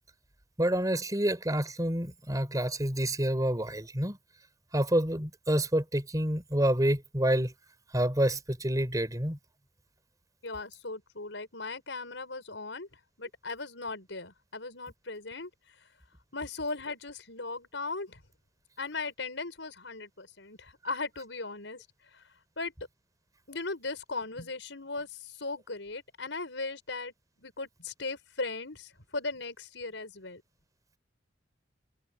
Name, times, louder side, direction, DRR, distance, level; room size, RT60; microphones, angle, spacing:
voice 1, 0.6-4.2 4.7-7.5 7.9-9.4, right 1 dB, 20° right, 4.9 m, -28 dB
voice 2, 10.4-12.9 13.2-15.5 16.3-18.2 18.8-21.9 22.1-22.2 22.6-22.7 23.5-27.1 27.4-30.4, left 3 dB, 75° left, 5.6 m, -38 dB
head